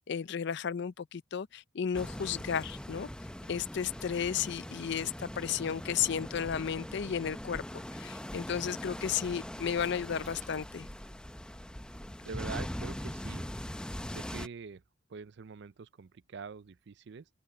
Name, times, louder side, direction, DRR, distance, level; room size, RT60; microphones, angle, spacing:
voice 1, 0.0-3.1 3.5-10.9, left 7 dB, 60° left, 0.5 m, -33 dB
sound 1, 1.9-14.5, equal, 5° left, 0.6 m, -41 dB
sound 2, 7.2-12.0 12.4-12.5 13.1-13.2, right 9 dB, 40° right, 4.9 m, -65 dB
voice 2, 12.2-13.4 14.1-14.8 15.1-17.3, right 5 dB, 65° right, 0.5 m, -44 dB
open air
head